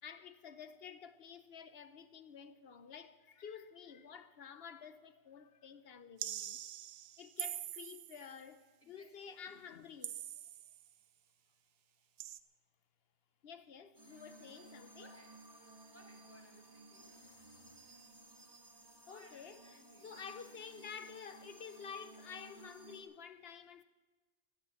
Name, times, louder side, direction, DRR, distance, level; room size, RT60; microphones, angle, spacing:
voice 1, 0.0-6.6 7.2-8.6 8.9-10.2 13.4-15.1 19.1-19.6 20.0-23.8, left 7 dB, 55° left, 0.9 m, -51 dB
sound 1, 6.2-8.3 10.0-10.9 12.2-12.4, right 12 dB, 75° right, 1.0 m, -44 dB
voice 2, 8.8-9.4 14.3-14.6 15.0-15.4 15.9-17.1 19.1-20.2, left 1 dB, 10° left, 1.5 m, -63 dB
sound 2, 13.9-23.0, right 2 dB, 20° right, 1.8 m, -57 dB
14.5 x 11.0 x 7.1 m
omnidirectional pair, 1.4 m